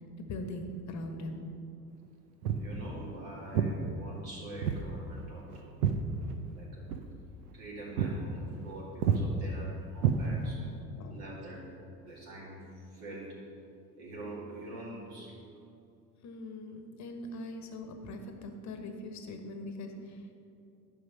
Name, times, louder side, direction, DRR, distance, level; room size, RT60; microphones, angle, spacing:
voice 1, 0.2-1.4 10.8-11.1 16.2-20.3, left 1 dB, 35° left, 5 dB, 1.2 m, -41 dB
Walk footsteps, 2.4-2.7 3.5-3.8 4.6-4.9 5.2-6.6 6.9-7.1 7.5-7.7 8.0-8.2 8.5-8.7 9.0-9.2 10.0-10.7, right 7 dB, 70° right, 0.8 m, -29 dB
voice 2, 2.5-5.7 6.5-6.9 7.5-10.6 11.1-11.7 12.0-13.4 14.0-15.4 17.5-17.6, right 1 dB, 50° right, -6 dB, 2.4 m, -45 dB
11.0 x 5.5 x 5.6 m, 2.6 s
figure-of-eight pair, 70°, 49 cm